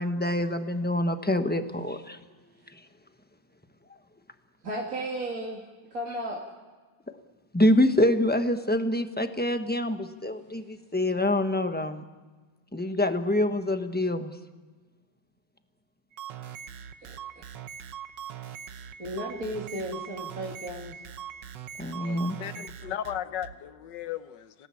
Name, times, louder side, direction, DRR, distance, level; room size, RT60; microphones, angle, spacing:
voice 1, 0.0-2.2 7.5-12.0 12.7-14.3 21.8-22.4, left 1 dB, 5° left, 0.9 m, -26 dB
voice 2, 4.6-5.6 5.9-6.4 17.0-17.2 19.0-20.9, right 1 dB, 45° right, 3.1 m, -34 dB
sound 1, 16.1-23.6, right 9 dB, 70° right, 1.6 m, -41 dB
voice 3, 22.0-24.7, left 10 dB, 70° left, 1.6 m, -36 dB
26.5 x 18.0 x 8.6 m
omnidirectional pair, 2.0 m